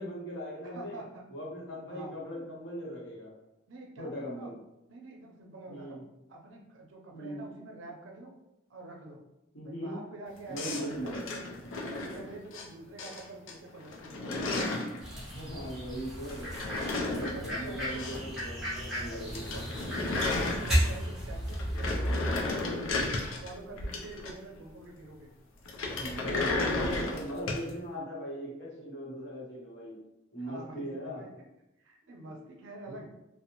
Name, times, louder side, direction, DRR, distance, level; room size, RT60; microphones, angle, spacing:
voice 1, 0.0-1.0 1.3-3.3 4.0-4.5 5.7-6.0 7.1-7.4 9.5-10.0 10.5-11.2 15.1-16.5 17.0-19.5 26.0-30.0 30.3-31.2 32.9-33.0, equal, 55° left, -4 dB, 0.8 m, -39 dB
voice 2, 0.6-1.2 1.9-2.1 3.7-4.5 4.9-6.0 6.3-8.3 8.7-9.2 9.6-11.4 11.8-14.3 17.2-18.3 19.3-25.3 30.4-31.3 31.8-33.0, right 2 dB, 75° right, 1 dB, 0.5 m, -47 dB
sound 1, 10.6-12.7 13.0-13.5 13.8-15.0 16.3-18.4 18.7-18.8 19.1-19.2 19.3-21.1 21.5-24.6 25.7-27.7, left 2 dB, 80° left, 0.4 m, -34 dB
sound 2, 15.0-22.7, equal, ahead, 0.6 m, -34 dB
2.5 x 2.0 x 2.9 m, 0.89 s
head